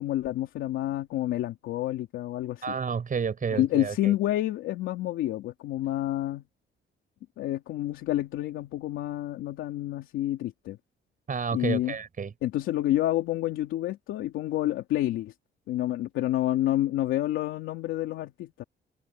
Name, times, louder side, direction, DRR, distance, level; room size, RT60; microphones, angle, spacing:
voice 1, 0.0-2.7 3.5-6.4 7.4-10.8 11.5-12.0 12.4-15.3 15.7-18.6, left 14 dB, 90° left, 2.9 m, -29 dB
voice 2, 2.6-4.1 11.3-12.3, right 6 dB, 45° right, 6.3 m, -30 dB
cardioid pair, 90°, 20 cm